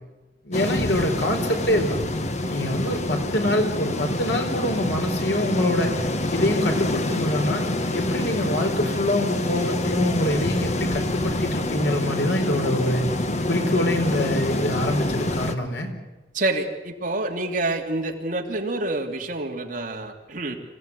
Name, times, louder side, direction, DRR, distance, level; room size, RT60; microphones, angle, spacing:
voice 1, 0.4-2.0 2.5-7.6 7.9-13.0 13.5-15.9, left 1 dB, 90° left, 4 dB, 4.4 m, -25 dB
sound 1, 0.5-15.5, left 1 dB, 40° left, 1.5 m, -26 dB
voice 2, 16.3-20.6, right 2 dB, 50° right, 2 dB, 3.0 m, -27 dB
26.0 x 16.5 x 9.8 m, 1.1 s
head